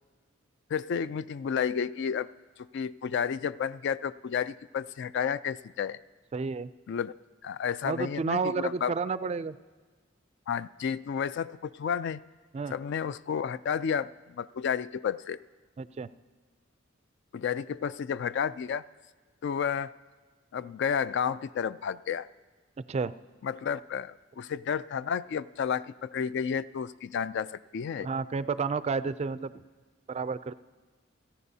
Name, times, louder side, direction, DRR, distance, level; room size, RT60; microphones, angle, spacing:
voice 1, 0.7-2.3 2.6-6.0 6.9-7.1 7.4-8.9 10.5-12.2 12.7-15.4 17.3-18.8 19.4-19.9 20.5-22.3 23.4-28.1, left 7 dB, 60° left, 16 dB, 0.3 m, -31 dB
voice 2, 6.3-6.7 7.8-9.6 12.5-12.7 15.8-16.1 22.8-23.1 28.0-29.6 30.1-30.5, right 4 dB, 35° right, 14 dB, 0.3 m, -31 dB
29.0 x 10.0 x 2.8 m, 1.4 s
head